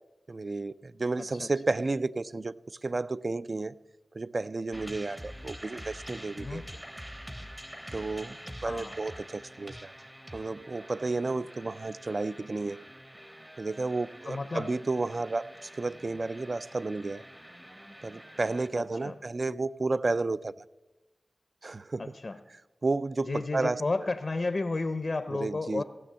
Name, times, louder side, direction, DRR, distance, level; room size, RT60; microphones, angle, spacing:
voice 1, 0.3-3.8 4.1-6.6 7.9-8.4 8.6-9.9 10.3-12.8 13.6-17.2 18.0-20.5 21.6-22.2 22.8-23.8 25.3-25.8, right 3 dB, 45° right, 0.3 m, -32 dB
sound 1, 4.7-19.1, equal, 10° right, 0.7 m, -46 dB
voice 2, 8.6-9.0 14.3-14.7 19.0-19.2 22.0-22.4 23.3-25.8, left 3 dB, 50° left, 0.5 m, -32 dB
15.5 x 6.1 x 7.3 m
wide cardioid pair, 65°, 0 cm